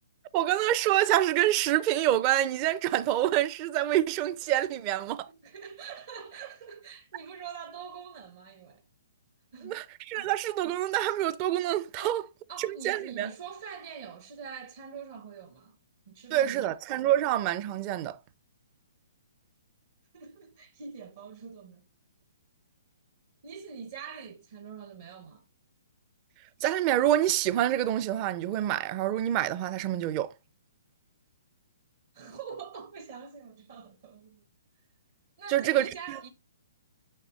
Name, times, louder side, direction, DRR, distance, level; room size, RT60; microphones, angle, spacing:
voice 1, 0.3-5.3 9.6-12.2 12.6-13.3 16.3-18.2 26.6-30.3 35.5-36.2, right 13 dB, 30° right, 0.5 m, -27 dB
voice 2, 5.3-8.8 9.5-9.9 10.2-10.3 12.0-12.2 12.5-15.8 16.1-16.7 20.1-21.9 23.4-25.4 32.1-34.4 35.4-36.3, right 6 dB, 55° right, 0.9 m, -44 dB
6.5 x 6.0 x 3.1 m
hypercardioid pair, 135°, 0 cm